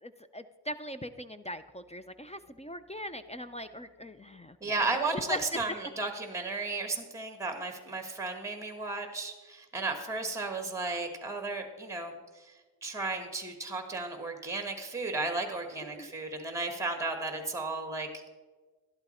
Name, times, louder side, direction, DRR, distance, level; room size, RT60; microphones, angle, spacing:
voice 1, 0.0-5.6 16.0-16.1, left 1 dB, 15° left, 11 dB, 0.4 m, -40 dB
voice 2, 4.6-12.5 12.8-18.1, right 3 dB, 5° right, 6 dB, 1.3 m, -34 dB
12.0 x 11.5 x 4.3 m, 1.3 s
wide cardioid pair, 90°, 49 cm